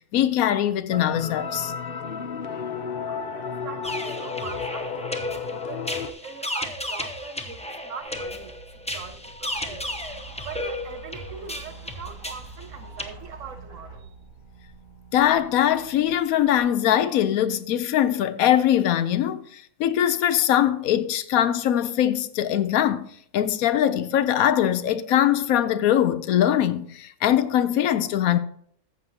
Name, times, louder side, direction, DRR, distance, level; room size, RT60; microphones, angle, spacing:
voice 1, 0.1-1.7 15.1-23.1 23.3-28.4, left 11 dB, 75° left, 1.0 m, -22 dB
sound 1, 0.9-6.1, left 5 dB, 55° left, 0.6 m, -32 dB
voice 2, 3.1-8.6 8.9-10.0 10.4-14.1, right 6 dB, 65° right, 1.1 m, -42 dB
sound 2, 3.8-13.1, left 1 dB, 5° left, 0.6 m, -34 dB
sound 3, 8.0-16.6, right 3 dB, 85° right, 4.8 m, -46 dB
14.0 x 7.5 x 2.7 m
omnidirectional pair, 1.5 m